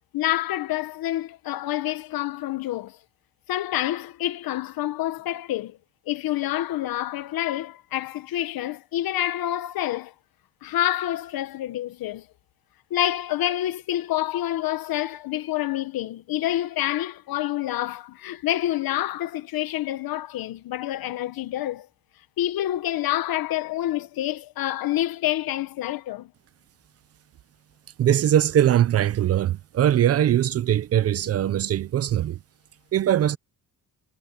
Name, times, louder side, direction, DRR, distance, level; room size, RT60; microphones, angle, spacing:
voice 1, 0.1-3.0 3.5-5.8 6.1-10.1 10.6-12.3 12.9-21.9 22.4-26.3, left 13 dB, 75° left, 1.1 m, -27 dB
voice 2, 28.0-32.4 32.9-33.4, right 11 dB, 45° right, 0.5 m, -21 dB
cardioid pair, 175°, 36 cm